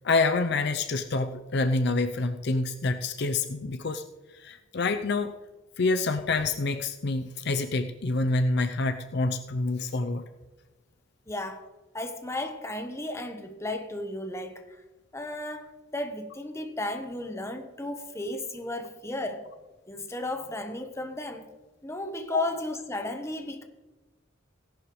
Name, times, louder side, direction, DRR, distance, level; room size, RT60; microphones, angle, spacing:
voice 1, 0.0-4.0 4.3-5.3 5.8-10.2 22.3-22.4, left 3 dB, 55° left, 8 dB, 0.6 m, -27 dB
voice 2, 11.3-11.7 11.9-14.8 15.1-19.5 19.9-21.5 21.8-23.6, left 2 dB, 15° left, 5 dB, 1.0 m, -34 dB
17.0 x 11.0 x 3.2 m, 1.2 s
head